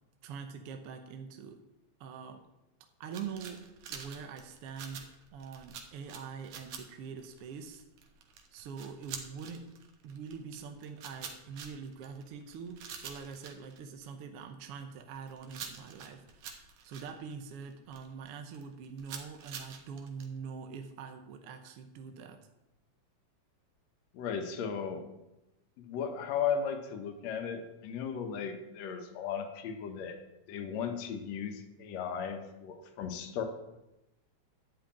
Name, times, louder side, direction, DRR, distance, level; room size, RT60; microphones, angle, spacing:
voice 1, 0.2-1.6 2.0-2.4 3.0-7.9 8.5-9.7 10.0-22.5, right 6 dB, 65° right, 5 dB, 1.6 m, -44 dB
sound 1, 3.1-14.4 14.9-18.3 18.5-20.3, right 6 dB, 90° right, 2.8 m, -46 dB
voice 2, 24.1-25.0 25.8-30.2 30.5-33.4, left 7 dB, 70° left, 6 dB, 2.3 m, -36 dB
11.5 x 5.6 x 8.8 m, 0.95 s
omnidirectional pair, 3.3 m